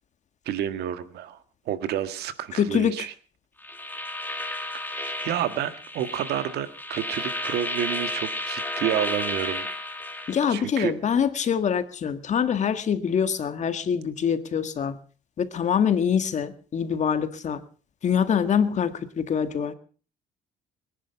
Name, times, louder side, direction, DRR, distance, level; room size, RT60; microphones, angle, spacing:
voice 1, 0.4-1.4 1.7-3.1 4.3-4.5 4.9-9.7 10.5-10.9, right 11 dB, 75° right, 11 dB, 1.7 m, -30 dB
voice 2, 2.5-3.1 10.3-15.0 15.4-17.6 18.0-19.7, left 7 dB, 45° left, 11 dB, 1.7 m, -24 dB
sound 1, 3.6-10.4, left 1 dB, 10° left, 2.5 m, -32 dB
22.5 x 10.5 x 5.8 m, 0.40 s
cardioid pair, 110°, 17 cm